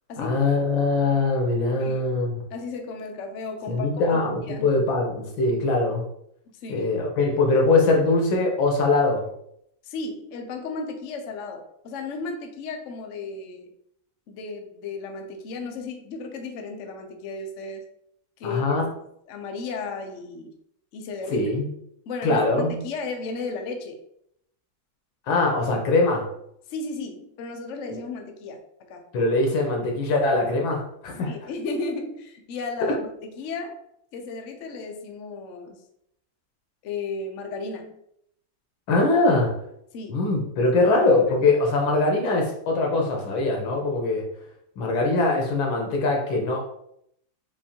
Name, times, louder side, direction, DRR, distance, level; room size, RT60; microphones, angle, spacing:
voice 1, 0.2-2.4 3.7-6.0 6.7-9.2 18.4-18.9 21.3-21.7 22.2-22.9 25.3-26.3 29.1-31.3 38.9-39.5 40.1-44.2 44.8-46.6, left 3 dB, 85° left, 1 dB, 1.8 m, -22 dB
voice 2, 1.8-2.2 2.5-4.8 6.6-6.9 9.8-13.7 14.3-17.8 18.4-18.9 19.3-20.5 20.9-21.5 22.1-24.0 26.7-28.6 28.9-29.0 31.1-33.0 33.4-33.8 34.1-35.8 36.8-38.0 39.9-40.2 40.7-41.1 41.4-41.5, left 4 dB, 65° left, 3 dB, 0.7 m, -34 dB
6.9 x 2.7 x 2.8 m, 0.74 s
omnidirectional pair, 2.1 m